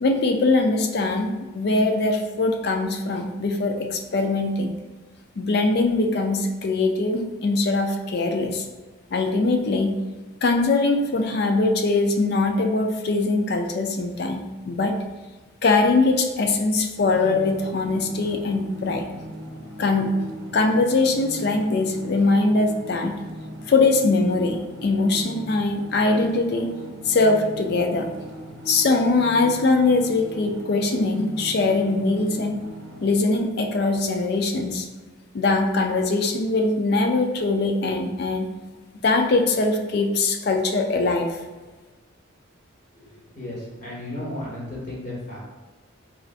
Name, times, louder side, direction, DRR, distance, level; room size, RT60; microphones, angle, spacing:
voice 1, 0.0-4.7 5.4-8.7 9.1-9.9 10.4-14.9 15.6-19.0 19.8-20.1 20.5-23.2 23.7-26.7 27.1-28.1 28.7-32.6 33.0-34.9 35.3-38.5 39.0-41.3, left 3 dB, 50° left, 4 dB, 0.4 m, -22 dB
sound 1, 17.0-33.1, equal, 75° right, 0.7 m, -40 dB
voice 2, 42.9-45.4, left 1 dB, 35° left, -8 dB, 1.2 m, -34 dB
4.5 x 2.4 x 2.4 m, 1.2 s
head